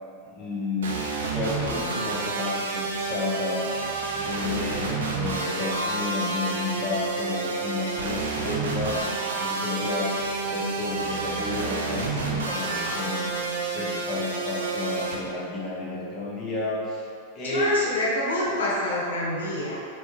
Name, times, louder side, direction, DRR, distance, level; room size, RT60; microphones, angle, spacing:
voice 1, 0.2-17.0 17.3-17.8, left 2 dB, 25° left, -6 dB, 0.7 m, -31 dB
sound 1, 0.8-15.2, right 3 dB, 65° right, 0.4 m, -29 dB
voice 2, 17.4-19.8, left 1 dB, 65° left, -5 dB, 0.7 m, -27 dB
3.3 x 2.6 x 3.0 m, 2.3 s
figure-of-eight pair, 90°, 0 cm